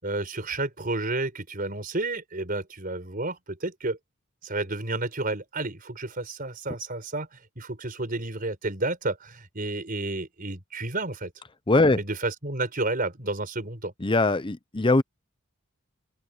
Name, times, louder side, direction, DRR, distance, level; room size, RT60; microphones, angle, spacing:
voice 1, 0.0-4.0 4.4-11.3 11.9-13.9, right 2 dB, 45° right, 5.1 m, -31 dB
voice 2, 11.7-12.0 14.0-15.0, left 2 dB, 25° left, 0.7 m, -21 dB
open air
head